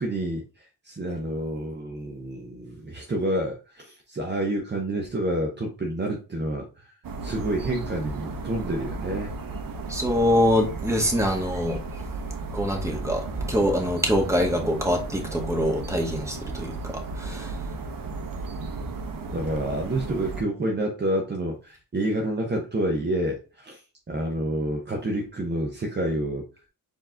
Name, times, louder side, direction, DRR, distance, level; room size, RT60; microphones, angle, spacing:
voice 1, 0.0-6.9 7.2-9.3 19.3-23.8 24.1-26.4, right 1 dB, 30° right, 0.9 m, -28 dB
sound 1, 7.0-20.4, right 3 dB, 70° right, 1.0 m, -34 dB
voice 2, 9.9-11.8 12.5-17.5, equal, 10° right, 1.5 m, -24 dB
4.6 x 3.0 x 3.6 m
cardioid pair, 95°, 35 cm